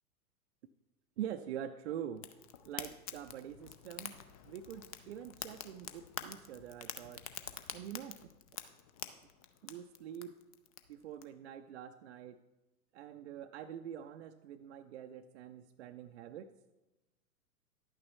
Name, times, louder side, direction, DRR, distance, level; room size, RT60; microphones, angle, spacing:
voice 1, 1.2-2.3 2.7-4.2 4.4-7.2 7.7-8.2 9.6-10.4 10.9-12.4 12.9-16.5, right 10 dB, 45° right, 8 dB, 0.5 m, -45 dB
Fire, 2.2-11.2, left 10 dB, 25° left, 0.4 m, -47 dB
11.0 x 8.9 x 3.1 m, 1.0 s
figure-of-eight pair, 105°, 47 cm